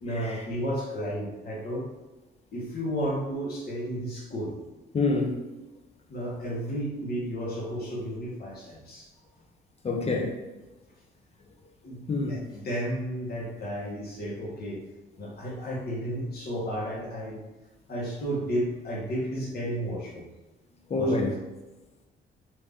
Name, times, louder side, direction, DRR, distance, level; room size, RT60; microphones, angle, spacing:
voice 1, 0.0-1.9 2.5-4.5 6.1-9.1 11.8-14.8 15.2-17.4 17.9-20.3 21.0-21.1, equal, 50° left, 1.4 m, -32 dB
voice 2, 4.9-5.3 9.8-10.3 12.1-12.4 20.9-21.3, left 3 dB, 30° left, 0.7 m, -26 dB
3.1 x 2.7 x 3.5 m
cardioid pair, 90°, 20 cm